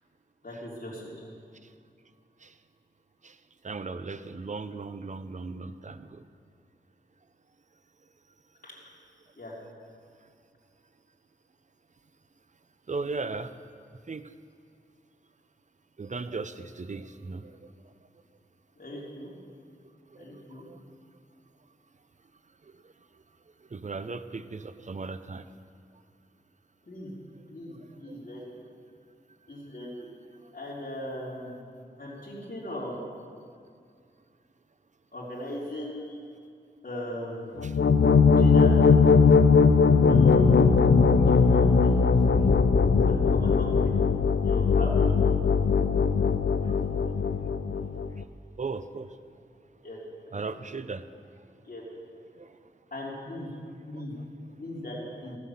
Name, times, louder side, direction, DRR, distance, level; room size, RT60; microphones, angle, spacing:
voice 1, 0.4-1.0 8.6-8.7 9.4-9.5 18.8-19.3 20.1-20.6 26.9-27.1 27.5-28.4 29.5-29.9 30.5-31.6 32.0-32.9 35.1-36.1 36.8-37.5 38.4-38.7 40.1-40.5 41.2-42.0 43.0-43.9 44.4-45.1 49.8-50.0 51.7-51.8 52.9-53.5 53.8-54.1 54.6-55.4, left 1 dB, 50° left, -7 dB, 3.4 m, -38 dB
voice 2, 3.6-6.2 12.9-13.5 14.1-14.2 16.0-17.7 20.1-20.8 22.6-22.9 23.7-25.5 28.0-28.2 29.8-29.9 37.6-37.8 39.4-39.5 41.3-41.4 46.6-47.2 48.6-49.3 49.8-49.9 50.3-51.2 52.4-52.6 53.9-54.5, right 4 dB, 45° right, 12 dB, 0.6 m, -38 dB
sound 1, 37.6-48.2, left 5 dB, 90° left, 0.5 m, -20 dB
15.0 x 7.6 x 7.1 m, 2.2 s
wide cardioid pair, 75°, 18 cm